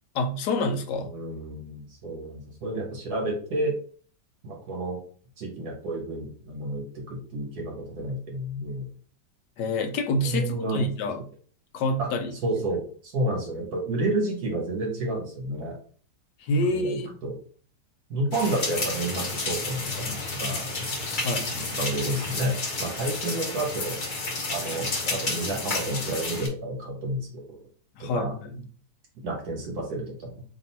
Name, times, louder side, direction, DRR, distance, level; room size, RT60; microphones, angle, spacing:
voice 1, 0.1-1.1 9.6-11.2 11.7-12.3 16.4-17.1 21.2-21.6 28.0-28.6, left 2 dB, 80° left, 7 dB, 1.3 m, -27 dB
voice 2, 1.1-3.7 4.4-5.0 5.4-8.9 10.2-10.9 12.0-12.1 12.4-15.8 16.7-17.3 18.1-20.6 21.7-24.0 24.5-27.4 28.0-28.3 29.2-30.4, right 1 dB, 60° right, 0 dB, 1.8 m, -30 dB
sound 1, 18.3-26.5, left 3 dB, 40° left, 0.8 m, -31 dB
3.4 x 2.7 x 4.2 m, 0.43 s
omnidirectional pair, 1.9 m